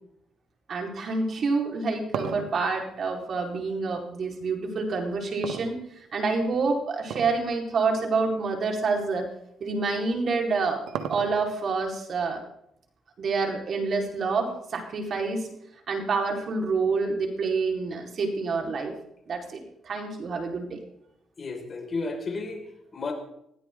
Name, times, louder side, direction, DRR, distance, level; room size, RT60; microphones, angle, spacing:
voice 1, 0.7-9.3 9.6-10.8 11.1-12.4 13.2-15.6 15.9-18.9 19.3-20.8, right 4 dB, 55° right, 2 dB, 4.4 m, -27 dB
sound 1, 1.6-4.0 5.4-6.3 7.0-7.5 7.8-7.9 8.7-8.8 10.1-11.6, right 8 dB, 85° right, 1.5 m, -35 dB
voice 2, 21.4-23.1, left 3 dB, 40° left, 2 dB, 5.2 m, -33 dB
21.0 x 16.5 x 3.8 m, 0.76 s
cardioid pair, 90°, 0 cm